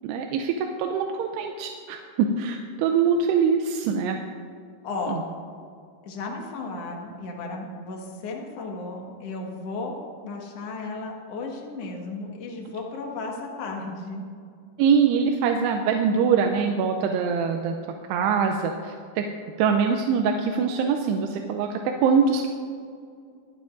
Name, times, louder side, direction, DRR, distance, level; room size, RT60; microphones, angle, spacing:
voice 1, 0.0-4.2 5.1-5.2 14.8-17.8 18.1-19.2 19.6-22.5, right 6 dB, 90° right, 3 dB, 2.7 m, -23 dB
voice 2, 4.8-5.2 6.0-10.0 10.2-14.3, left 3 dB, 55° left, 0 dB, 2.0 m, -34 dB
23.0 x 9.5 x 2.5 m, 2.3 s
omnidirectional pair, 4.6 m